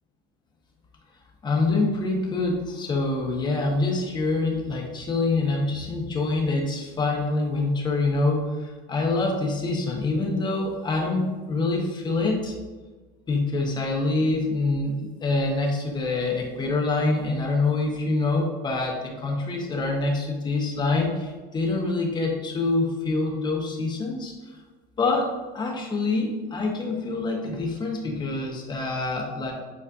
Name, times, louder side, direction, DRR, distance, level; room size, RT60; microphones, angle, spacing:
voice 1, 1.4-12.6 13.3-24.3 25.0-25.3 25.5-29.5, left 3 dB, 25° left, 0 dB, 1.2 m, -25 dB
8.5 x 4.3 x 2.6 m, 1.3 s
cardioid pair, 145°, 19 cm